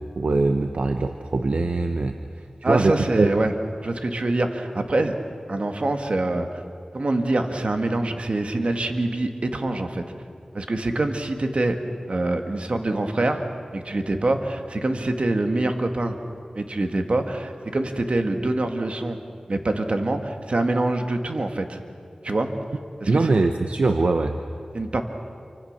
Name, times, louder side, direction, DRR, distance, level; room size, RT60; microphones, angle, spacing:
voice 1, 0.0-3.3 23.1-24.3, right 3 dB, 85° right, 6 dB, 1.1 m, -22 dB
voice 2, 2.6-3.5 3.8-5.2 5.5-6.6 6.9-10.0 10.5-11.8 12.1-16.2 16.5-19.2 19.5-21.8 22.2-22.5 23.0-23.4 24.7-25.0, right 2 dB, 65° right, 5 dB, 2.0 m, -25 dB
29.0 x 25.0 x 6.8 m, 2.4 s
wide cardioid pair, 50°, 2 cm